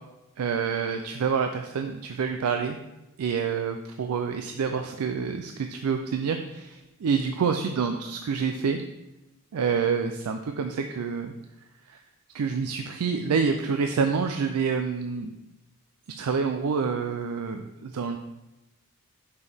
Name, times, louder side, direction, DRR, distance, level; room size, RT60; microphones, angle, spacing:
voice 1, 0.4-2.8 3.2-8.8 9.5-11.3 11.9-12.0 12.3-15.3 16.1-18.2, right 5 dB, 80° right, 6 dB, 0.4 m, -27 dB
6.2 x 5.4 x 3.4 m, 1.0 s
head